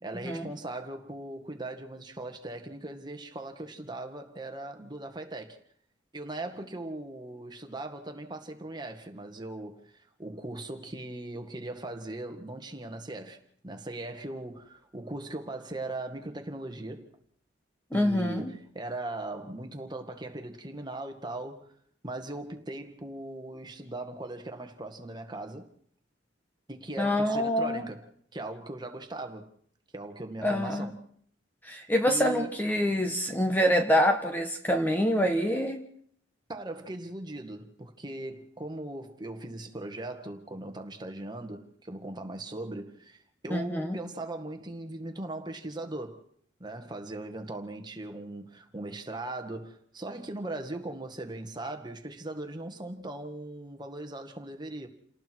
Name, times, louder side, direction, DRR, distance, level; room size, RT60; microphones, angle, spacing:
voice 1, 0.0-5.6 6.1-13.4 13.6-17.1 17.9-21.7 22.0-25.7 26.7-28.1 28.3-29.5 29.9-31.0 32.1-32.6 36.5-46.2 46.6-54.9, right 2 dB, 25° right, 1.9 m, -39 dB
voice 2, 17.9-18.5 27.0-27.9 30.4-30.9 31.6-35.8 43.5-44.0, equal, 10° left, 1.4 m, -26 dB
29.5 x 18.5 x 4.7 m
head